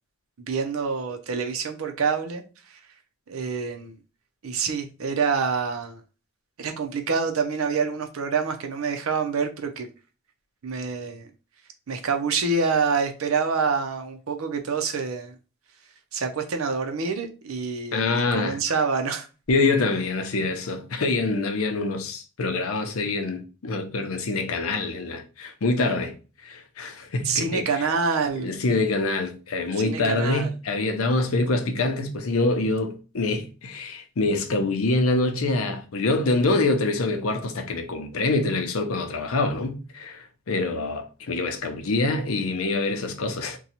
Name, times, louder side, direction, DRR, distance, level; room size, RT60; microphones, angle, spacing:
voice 1, 0.5-2.4 2.7-2.8 3.3-4.0 4.4-6.0 6.6-9.9 10.6-11.3 11.9-15.3 16.1-19.3 27.2-28.5 29.8-30.5, right 5 dB, 85° right, 0.6 m, -26 dB
voice 2, 17.9-18.6 19.5-26.2 26.4-27.8 28.4-43.6, left 3 dB, 90° left, 0.6 m, -25 dB
2.7 x 2.3 x 4.1 m
head